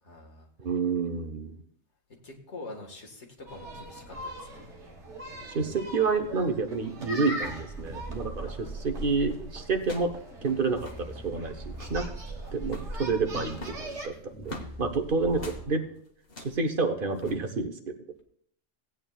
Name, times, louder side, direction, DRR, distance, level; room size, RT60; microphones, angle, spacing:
voice 1, 0.0-0.5 2.2-4.6 8.4-9.0 12.4-12.6 14.1-14.2 15.3-15.7, left 2 dB, 80° left, 1 dB, 1.9 m, -46 dB
voice 2, 0.6-1.6 5.5-10.1 10.4-12.1 12.5-15.8 16.4-18.0, right 4 dB, 50° right, 6 dB, 1.0 m, -29 dB
sound 1, 3.5-14.1, right 1 dB, 85° right, 1.8 m, -42 dB
sound 2, 7.4-15.6, right 2 dB, 10° left, 1.3 m, -41 dB
sound 3, 8.8-9.1 9.8-10.2 10.5-10.6 10.7-11.1 11.6-12.0 12.6-13.0 13.5-14.7 15.3-15.6 16.2-16.6 17.2-17.3, left 1 dB, 55° left, 1.5 m, -43 dB
17.0 x 9.0 x 2.3 m, 0.64 s
omnidirectional pair, 1.2 m